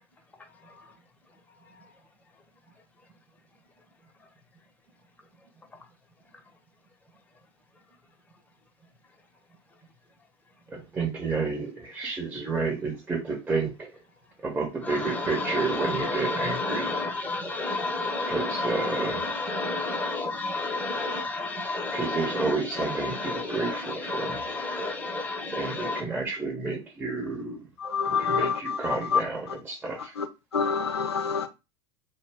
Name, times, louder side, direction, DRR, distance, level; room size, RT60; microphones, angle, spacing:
voice 1, 10.7-13.9 14.4-16.9 18.3-19.2 21.9-24.5 25.5-27.6 28.0-30.1, right 3 dB, 15° right, 0.9 m, -30 dB
voice 2, 15.5-22.2 23.2-23.8 24.1-26.0, left 2 dB, 10° left, 0.8 m, -30 dB
voice 3, 27.8-28.8 29.1-29.2 30.2-30.3 30.5-31.5, left 6 dB, 85° left, 0.4 m, -26 dB
2.6 x 2.0 x 3.3 m
figure-of-eight pair, 85°, 13 cm